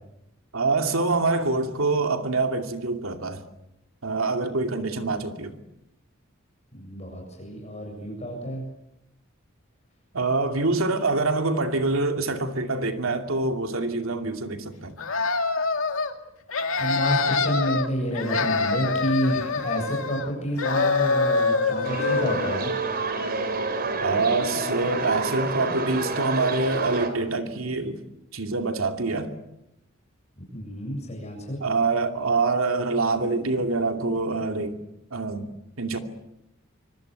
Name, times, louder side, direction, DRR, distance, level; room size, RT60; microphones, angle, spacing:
voice 1, 0.5-3.4 4.0-5.6 10.1-15.0 24.0-28.0 28.3-29.3 31.6-34.8 35.1-35.5 35.8-36.0, right 3 dB, 80° right, 2.6 m, -25 dB
voice 2, 6.7-8.6 16.8-22.8 30.5-31.6, equal, 35° left, 7.7 m, -29 dB
sound 1, 15.0-16.1 16.5-17.9 18.1-20.3 20.6-22.6, left 4 dB, 75° left, 2.4 m, -25 dB
sound 2, 21.8-27.1, right 3 dB, 50° right, 4.0 m, -28 dB
25.0 x 24.5 x 8.2 m
head